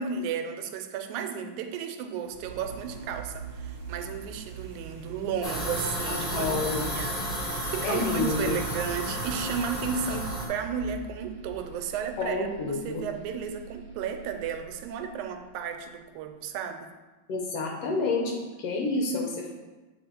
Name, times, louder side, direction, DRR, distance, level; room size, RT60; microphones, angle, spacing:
voice 1, 0.0-16.9, right 7 dB, 85° right, 6 dB, 2.0 m, -34 dB
sound 1, 2.3-16.1, right 6 dB, 60° right, 1.6 m, -43 dB
sound 2, 5.4-10.5, equal, 20° left, 1.3 m, -32 dB
voice 2, 6.1-6.9 7.8-8.6 12.2-13.0 17.3-19.5, left 3 dB, 70° left, 0 dB, 1.7 m, -29 dB
7.9 x 3.9 x 4.4 m, 1.2 s
omnidirectional pair, 3.4 m